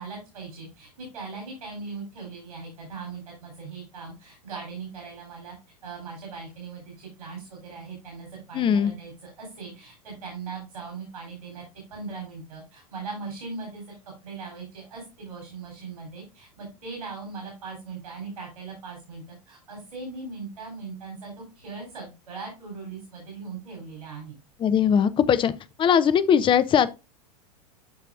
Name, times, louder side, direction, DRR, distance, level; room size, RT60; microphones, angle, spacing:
voice 1, 0.0-5.5 5.8-11.6 11.9-13.9 14.2-24.4, right 4 dB, 75° right, 3.8 m, -39 dB
voice 2, 8.5-8.9 24.6-25.5 25.8-26.9, left 8 dB, 25° left, 0.7 m, -20 dB
12.5 x 4.4 x 2.5 m
figure-of-eight pair, 90°, 20 cm